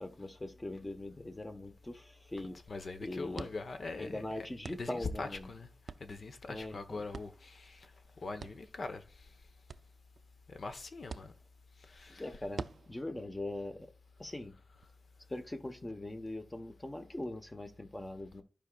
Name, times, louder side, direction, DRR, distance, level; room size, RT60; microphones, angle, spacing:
voice 1, 0.0-2.6 3.0-3.5 4.0-5.5 6.5-7.0 12.1-13.9 14.2-14.5 15.3-18.4, left 1 dB, 20° left, 1.2 m, -41 dB
sound 1, 0.8-14.9, right 5 dB, 80° right, 0.4 m, -52 dB
voice 2, 2.7-5.7 6.0-9.4 10.5-11.3 11.8-12.5, left 3 dB, 70° left, 1.1 m, -43 dB
15.0 x 5.2 x 2.4 m
wide cardioid pair, 105°, 0 cm